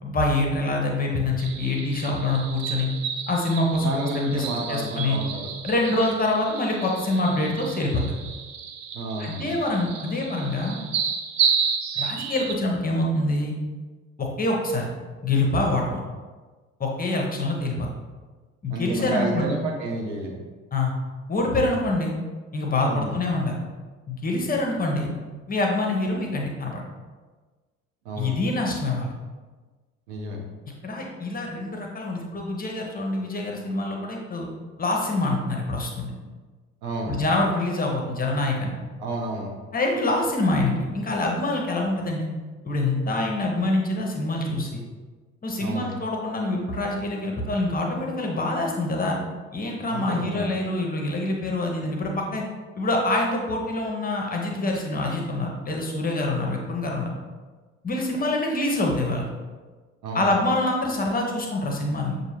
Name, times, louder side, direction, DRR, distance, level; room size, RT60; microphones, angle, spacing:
voice 1, 0.0-2.9 3.3-5.2 5.6-8.0 9.2-10.8 12.0-13.5 14.2-14.9 15.2-16.0 16.8-17.9 18.6-19.5 20.7-20.9 21.3-22.1 22.5-23.6 24.1-25.1 25.5-26.8 28.2-29.1 30.8-34.5 34.8-36.1 37.1-38.8 39.7-42.3 42.6-44.8 45.4-49.2 49.5-52.4 52.8-57.1 57.8-59.2 60.1-62.2, left 2 dB, 20° left, 0 dB, 0.8 m, -25 dB
sound 1, 1.4-12.5, right 6 dB, 45° right, 0.5 m, -31 dB
voice 2, 3.8-5.5 8.9-9.5 18.7-20.4 22.8-23.2 28.0-28.3 30.1-30.4 36.8-37.1 39.0-39.5 45.6-45.9 49.9-50.5 60.0-60.3, right 2 dB, 60° right, -1 dB, 1.0 m, -30 dB
6.5 x 2.5 x 3.0 m, 1.3 s
figure-of-eight pair, 55°, 39 cm